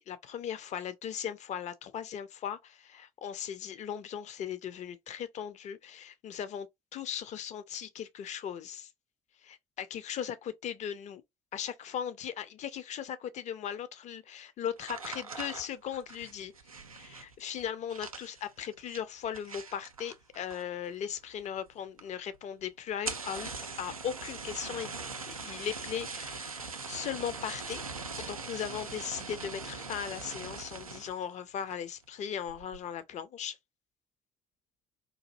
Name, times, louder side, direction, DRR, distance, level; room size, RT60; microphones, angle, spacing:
voice 1, 0.0-6.7 6.9-8.9 9.4-11.2 11.5-16.5 17.0-23.5 23.8-25.0 25.3-27.8 28.2-33.6, left 9 dB, 40° left, 0.5 m, -38 dB
sound 1, 14.8-20.9 21.2-21.7 22.0-22.1 22.3-22.4 22.9-31.2 31.7-32.0 32.5-32.8, right 4 dB, 90° right, 0.4 m, -41 dB
4.0 x 2.6 x 2.5 m
figure-of-eight pair, 50°, 18 cm